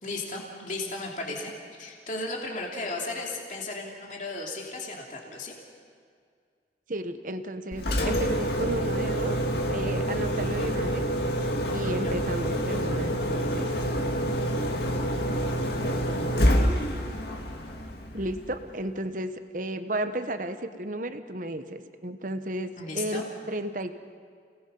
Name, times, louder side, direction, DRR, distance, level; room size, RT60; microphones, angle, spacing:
voice 1, 0.0-5.5 12.0-12.2 22.8-23.2, left 2 dB, 45° left, -1 dB, 2.9 m, -35 dB
voice 2, 6.9-9.4 9.7-11.0 11.7-13.7 18.1-24.0, right 1 dB, 45° right, 9 dB, 1.1 m, -33 dB
Engine, 7.7-18.7, equal, 60° left, 2.1 m, -27 dB
30.0 x 19.0 x 5.5 m, 2.2 s
head